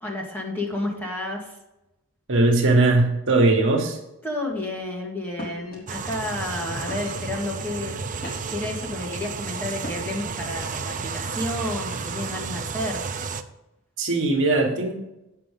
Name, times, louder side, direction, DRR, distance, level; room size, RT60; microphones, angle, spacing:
voice 1, 0.0-1.6 4.2-13.0, left 1 dB, 10° left, -2 dB, 1.8 m, -31 dB
voice 2, 2.3-4.0 14.0-14.9, right 2 dB, 60° right, 2 dB, 1.5 m, -19 dB
sound 1, 4.5-4.8 5.3-5.8 6.4-6.6 6.9-7.4 7.9-8.7 9.8-10.3, left 1 dB, 40° left, 3.6 m, -39 dB
sound 2, 5.9-13.4, right 5 dB, 35° right, 0.5 m, -32 dB
8.5 x 5.6 x 5.1 m, 0.93 s
head